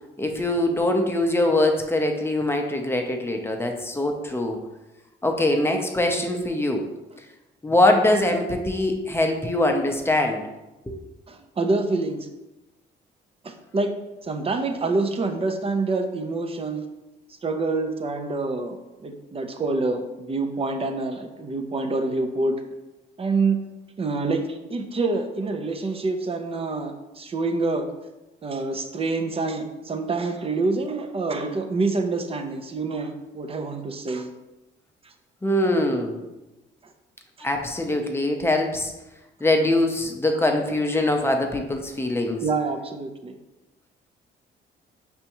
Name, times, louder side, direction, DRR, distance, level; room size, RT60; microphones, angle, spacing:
voice 1, 0.2-4.6 5.2-6.8 7.6-10.4 10.9-11.0 35.4-36.2 37.4-38.9 39.4-42.4, left 1 dB, 10° left, 3 dB, 0.6 m, -23 dB
voice 2, 11.3-12.3 13.4-13.9 14.2-16.8 17.4-18.8 19.0-22.6 23.2-23.6 24.0-27.8 28.4-34.3 37.4-37.5 42.4-43.3, right 3 dB, 30° right, 6 dB, 0.6 m, -26 dB
5.1 x 3.5 x 2.9 m, 1.0 s
cardioid pair, 90°, 20 cm